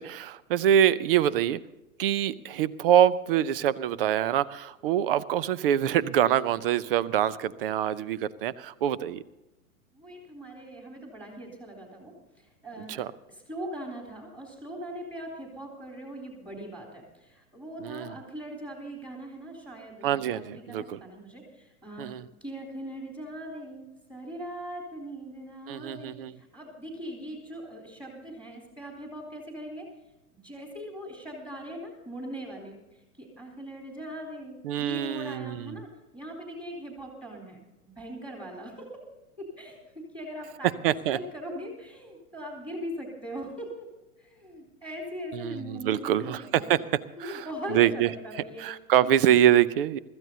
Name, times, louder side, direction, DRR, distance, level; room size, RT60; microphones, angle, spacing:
voice 1, 0.0-1.6 2.0-9.2 12.9-13.1 17.8-18.1 20.0-21.0 22.0-22.3 25.7-26.3 34.6-35.8 40.8-41.2 45.3-46.8 47.2-48.1 48.6-50.0, right 11 dB, 40° right, 20 dB, 0.7 m, -25 dB
voice 2, 9.9-12.1 12.6-13.0 13.3-22.1 22.4-29.9 30.4-32.8 33.2-35.9 36.1-39.0 39.4-40.7 41.1-43.9 44.2-46.8 47.2-48.6 49.0-49.1, equal, 10° right, 0 dB, 3.6 m, -40 dB
25.0 x 14.0 x 2.8 m, 0.99 s
figure-of-eight pair, 105°, 44 cm